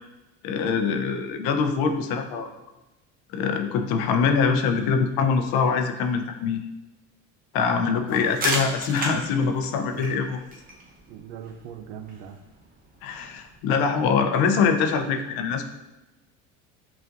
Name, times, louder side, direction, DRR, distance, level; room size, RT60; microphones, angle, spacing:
voice 1, 0.4-2.5 3.3-6.6 7.5-10.4 13.0-15.7, left 5 dB, 70° left, 6 dB, 0.6 m, -23 dB
voice 2, 7.6-8.3 9.9-10.1 11.1-12.4, right 9 dB, 75° right, 8 dB, 0.5 m, -40 dB
sound 1, 8.1-13.6, right 2 dB, 20° right, 0.9 m, -35 dB
5.8 x 2.5 x 2.5 m, 1.0 s
supercardioid pair, 90°, 38 cm